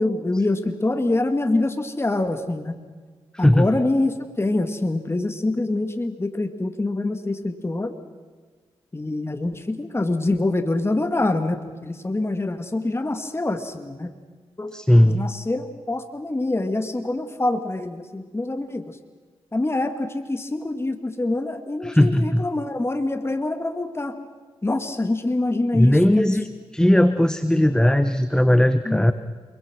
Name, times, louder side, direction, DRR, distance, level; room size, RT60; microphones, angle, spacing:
voice 1, 0.0-2.7 3.4-8.0 8.9-14.1 14.6-14.7 15.0-19.0 19.5-24.2 24.6-26.3 28.9-29.1, left 2 dB, 20° left, 8 dB, 2.0 m, -25 dB
voice 2, 3.3-3.7 14.7-15.2 21.8-22.4 25.7-29.1, left 1 dB, 5° left, 11 dB, 1.1 m, -18 dB
28.5 x 22.5 x 6.3 m, 1.5 s
cardioid pair, 60°, 11 cm